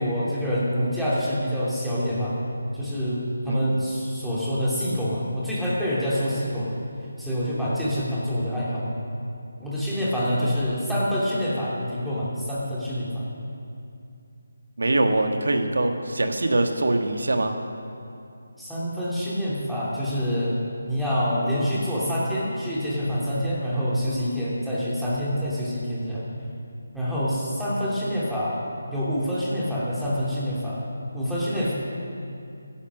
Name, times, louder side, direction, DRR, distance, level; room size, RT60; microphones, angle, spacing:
voice 1, 0.0-2.4 2.7-6.7 7.2-8.9 9.6-13.2 18.6-20.6 20.9-26.2 26.9-28.6 28.9-30.8 31.1-31.7, equal, ahead, -10 dB, 2.8 m, -26 dB
voice 2, 3.5-3.8 14.8-17.5, right 2 dB, 75° right, 5 dB, 1.6 m, -23 dB
15.5 x 10.5 x 6.3 m, 2.6 s
figure-of-eight pair, 160°, 0 cm